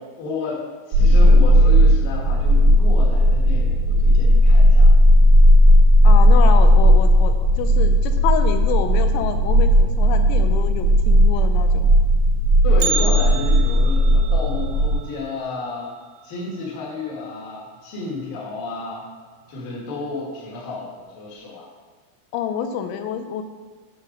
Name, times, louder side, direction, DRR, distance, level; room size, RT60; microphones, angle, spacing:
voice 1, 0.0-4.9 12.6-15.9 16.2-19.1 19.5-21.7, left 3 dB, 60° left, -4 dB, 2.7 m, -31 dB
sound 1, 0.9-14.9, equal, 65° right, 2.8 m, -14 dB
voice 2, 1.0-1.4 6.0-11.9 22.3-23.4, left 8 dB, 85° left, 7 dB, 2.7 m, -27 dB
Bell, 12.8-16.9 17.2-17.3 17.8-17.9 18.7-18.8 19.5-19.8 20.2-20.3, right 6 dB, 90° right, 3.4 m, -32 dB
9.6 x 4.0 x 6.0 m, 1.4 s
omnidirectional pair, 5.8 m